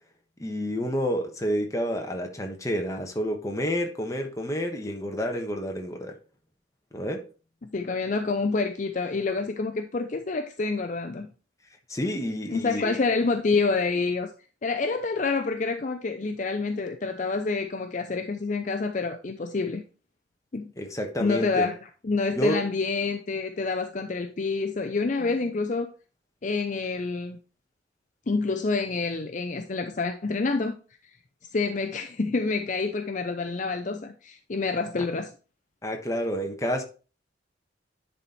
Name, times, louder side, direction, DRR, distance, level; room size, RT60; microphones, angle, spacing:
voice 1, 0.4-6.2 6.9-7.2 11.9-12.9 20.8-21.6 22.4-22.6 35.8-36.8, equal, 15° left, 3 dB, 1.3 m, -29 dB
voice 2, 7.6-11.3 12.5-14.3 14.6-19.8 20.5-20.7 21.2-21.8 22.0-25.9 26.4-27.4 28.3-30.8 31.5-35.3, left 4 dB, 40° left, 6 dB, 0.6 m, -27 dB
10.5 x 4.2 x 4.4 m, 0.35 s
head